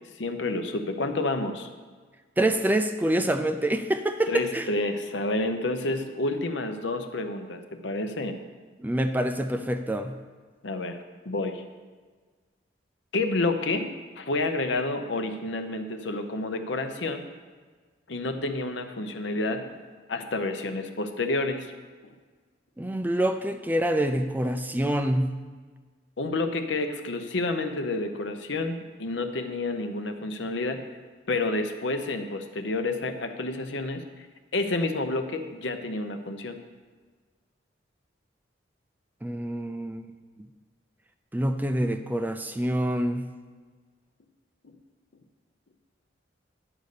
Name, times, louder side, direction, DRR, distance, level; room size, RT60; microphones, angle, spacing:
voice 1, 0.2-1.7 4.3-8.3 10.6-11.0 11.2-11.6 13.1-13.9 14.2-17.2 18.1-19.8 20.1-21.7 26.2-30.8 31.3-34.3 34.5-36.6, left 2 dB, 70° left, 7 dB, 0.8 m, -29 dB
voice 2, 2.4-4.7 8.8-10.2 22.8-25.4 39.2-40.1 41.3-43.3, right 1 dB, 10° right, 7 dB, 0.4 m, -26 dB
10.0 x 5.3 x 6.6 m, 1.5 s
head